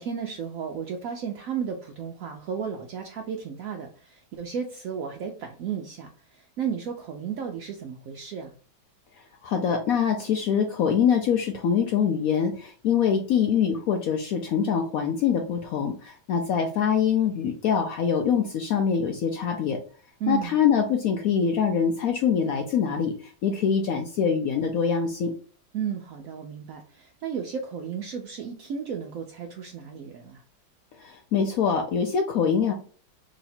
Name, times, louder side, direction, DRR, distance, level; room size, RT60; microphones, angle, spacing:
voice 1, 0.0-8.6 20.2-20.6 25.7-30.4, right 7 dB, 80° right, 3 dB, 0.7 m, -34 dB
voice 2, 9.4-19.8 20.3-25.3 31.0-32.7, left 7 dB, 85° left, 3 dB, 0.7 m, -24 dB
3.1 x 2.8 x 4.1 m, 0.41 s
omnidirectional pair, 2.0 m